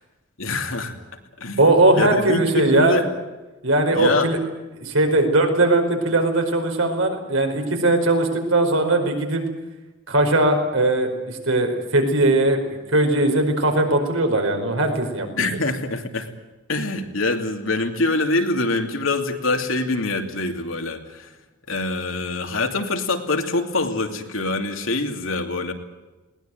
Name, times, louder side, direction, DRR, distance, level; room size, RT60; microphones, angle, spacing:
voice 1, 0.4-1.0 1.4-1.6 2.0-3.1 3.9-4.3 15.4-16.3 16.7-21.3 21.7-25.7, left 2 dB, 85° left, 4 dB, 2.7 m, -24 dB
voice 2, 1.6-3.0 3.6-4.4 4.7-9.4 10.1-15.3, right 2 dB, 85° right, 4 dB, 5.0 m, -19 dB
21.0 x 19.0 x 9.3 m, 1.1 s
head